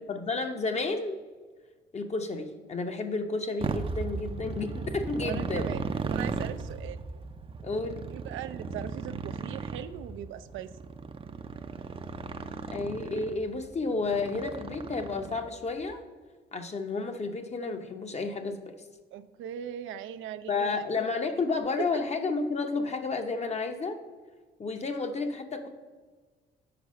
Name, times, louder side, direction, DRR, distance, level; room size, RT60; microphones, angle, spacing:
voice 1, 0.1-1.2 1.9-5.7 7.6-8.1 12.7-16.0 16.5-18.7 20.5-24.0 24.6-25.7, left 3 dB, 35° left, 6 dB, 0.8 m, -31 dB
Motorcycle, 3.6-15.7, right 4 dB, 25° right, 0.5 m, -36 dB
voice 2, 5.2-7.0 8.1-10.7 19.1-21.4 21.8-22.0, right 10 dB, 80° right, 11 dB, 0.4 m, -40 dB
5.9 x 4.7 x 6.3 m, 1.4 s
cardioid pair, 90°, 20 cm